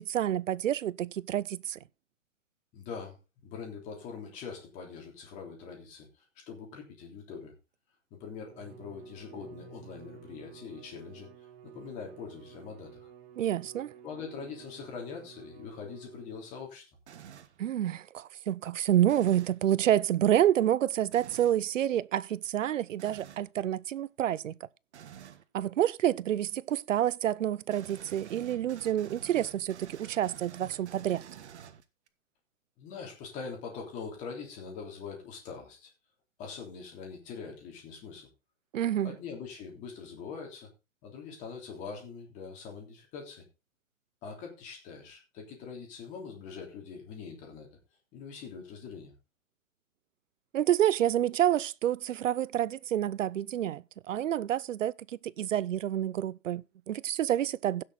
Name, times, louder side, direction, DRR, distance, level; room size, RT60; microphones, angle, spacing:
voice 1, 0.0-1.8 13.4-13.9 17.6-24.5 25.5-31.2 38.7-39.1 50.5-54.9 55.2-57.8, right 11 dB, 85° right, 0.7 m, -28 dB
voice 2, 2.7-7.5 8.1-11.3 11.6-13.1 14.0-16.9 32.8-35.9 36.4-38.3 39.0-40.7 41.0-43.5 44.2-47.7 48.1-49.1, left 5 dB, 20° left, 3.3 m, -43 dB
Bowed string instrument, 8.3-16.6, right 10 dB, 10° right, 0.7 m, -52 dB
sound 1, 17.1-17.6 19.1-19.6 21.1-21.6 23.0-23.5 24.9-25.4 27.7-32.1, right 9 dB, 65° right, 1.5 m, -49 dB
16.0 x 6.6 x 4.0 m
hypercardioid pair, 170°, 37 cm